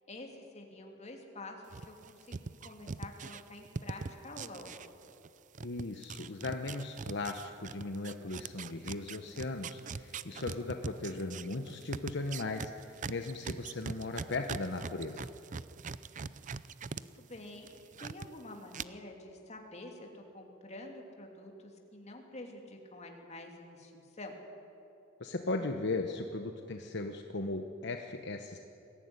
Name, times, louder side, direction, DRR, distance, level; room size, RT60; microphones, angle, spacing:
voice 1, 0.1-2.2 2.6-4.7 16.8-17.7 18.0-24.4, left 2 dB, 35° left, 2 dB, 2.9 m, -48 dB
sound 1, 1.7-5.3 5.5-17.0 17.3-18.3 18.7-18.8, right 5 dB, 40° right, 0.5 m, -41 dB
voice 2, 5.6-15.3 25.2-28.6, left 2 dB, 60° left, 5 dB, 1.0 m, -37 dB
22.0 x 15.0 x 9.8 m, 2.8 s
head